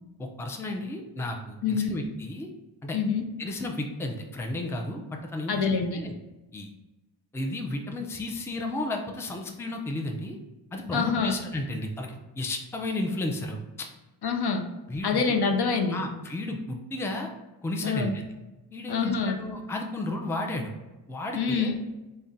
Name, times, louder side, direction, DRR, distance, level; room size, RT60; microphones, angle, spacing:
voice 1, 0.2-2.5 2.8-3.0 3.4-5.7 5.9-6.1 6.5-6.7 7.3-10.4 10.7-13.9 14.9-15.2 15.9-17.3 17.6-18.2 18.7-20.7 21.1-21.7, left 2 dB, 5° left, 2 dB, 0.4 m, -33 dB
voice 2, 1.6-2.0 2.9-3.2 5.5-6.0 10.9-11.4 14.2-14.7 15.0-16.0 17.8-18.1 18.9-19.4 21.3-21.8, left 5 dB, 60° left, 4 dB, 0.6 m, -26 dB
3.5 x 2.2 x 4.0 m, 1.1 s
cardioid pair, 60°, 45 cm